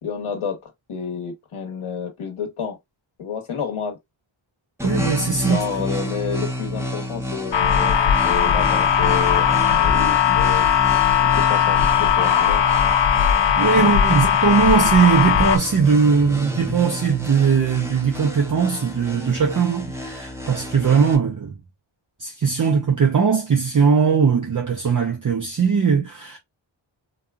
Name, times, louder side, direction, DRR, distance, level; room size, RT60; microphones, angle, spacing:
voice 1, 0.0-2.8 3.2-4.0 5.4-10.7 11.3-12.6 13.8-14.2, left 6 dB, 80° left, 1.3 m, -30 dB
sound 1, 4.8-21.2, equal, 5° right, 0.8 m, -30 dB
voice 2, 4.8-5.6 13.6-21.5 22.2-26.4, right 6 dB, 40° right, 0.6 m, -19 dB
sound 2, 7.5-15.6, left 9 dB, 60° left, 0.6 m, -18 dB
4.1 x 2.3 x 2.3 m
wide cardioid pair, 130°, 49 cm